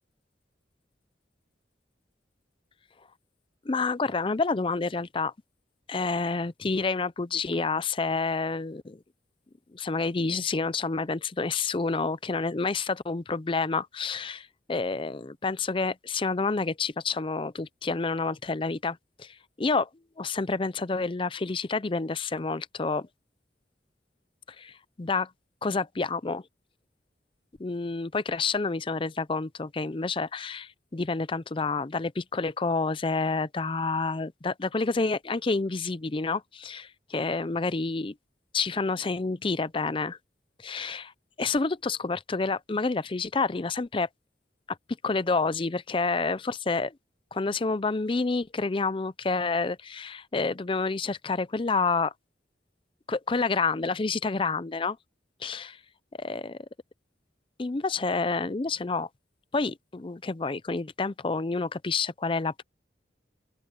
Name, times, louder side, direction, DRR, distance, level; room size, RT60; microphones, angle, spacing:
voice 1, 3.7-5.3 5.9-9.0 9.7-19.9 20.2-23.1 24.6-25.3 25.6-26.4 27.6-38.1 38.5-40.2 40.6-41.1 41.4-44.1 45.0-46.9 47.3-52.1 53.1-55.0 55.4-55.8 56.2-56.6 57.6-59.1 59.5-62.6, left 4 dB, 30° left, 0.5 m, -29 dB
open air
head